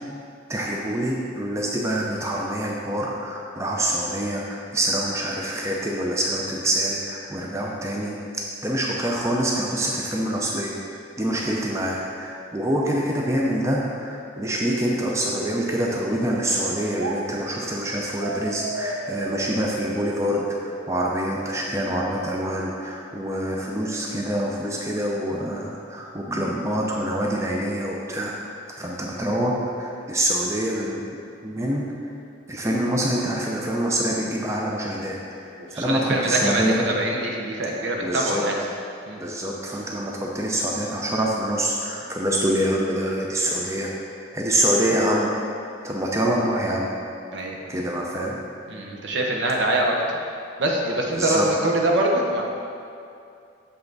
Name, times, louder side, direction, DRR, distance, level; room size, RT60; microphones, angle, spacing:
voice 1, 0.5-8.1 8.6-10.7 11.2-28.3 28.8-31.0 31.4-31.9 32.5-36.8 38.0-38.4 39.2-43.9 44.3-45.3 45.8-46.9 47.7-48.4 51.1-51.5, right 1 dB, 15° right, -2 dB, 0.5 m, -25 dB
sound 1, 14.4-17.2 18.2-21.2, right 3 dB, 90° right, 0.6 m, -34 dB
voice 2, 35.7-38.6 39.1-39.2 47.3-47.6 48.7-50.2 50.6-52.4, right 1 dB, 65° right, 0 dB, 0.9 m, -24 dB
7.0 x 5.6 x 3.9 m, 2.5 s
head